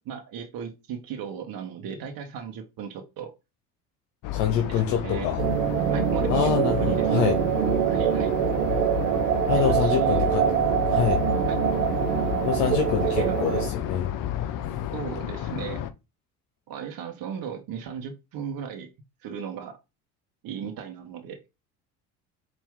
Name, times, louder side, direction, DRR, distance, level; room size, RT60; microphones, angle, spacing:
voice 1, 0.0-3.3 4.7-5.4 5.9-8.4 9.5-11.0 11.5-11.6 13.0-13.4 14.9-15.8 16.7-18.9 19.2-19.8 20.4-21.4, right 7 dB, 50° right, 1.0 m, -36 dB
sound 1, 4.2-15.9, left 12 dB, 45° left, 0.6 m, -31 dB
voice 2, 4.3-5.4 6.3-7.3 9.5-10.4 10.9-11.2 12.4-14.1, left 8 dB, 65° left, 0.9 m, -25 dB
sound 2, 5.4-13.7, right 11 dB, 70° right, 0.6 m, -24 dB
4.3 x 2.6 x 3.5 m
hypercardioid pair, 65°, 46 cm